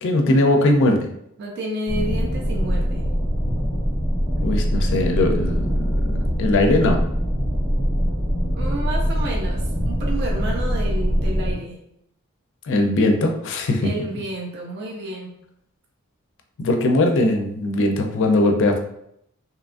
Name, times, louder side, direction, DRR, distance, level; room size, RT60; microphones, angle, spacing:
voice 1, 0.0-1.1 4.4-6.1 6.4-7.0 12.7-13.9 16.6-18.8, left 2 dB, 55° left, 4 dB, 0.4 m, -20 dB
voice 2, 1.4-3.1 8.5-11.8 13.8-15.4, right 1 dB, 50° right, -1 dB, 0.5 m, -30 dB
sound 1, 1.9-11.5, equal, 5° right, 0.9 m, -23 dB
2.8 x 2.3 x 2.4 m, 0.74 s
head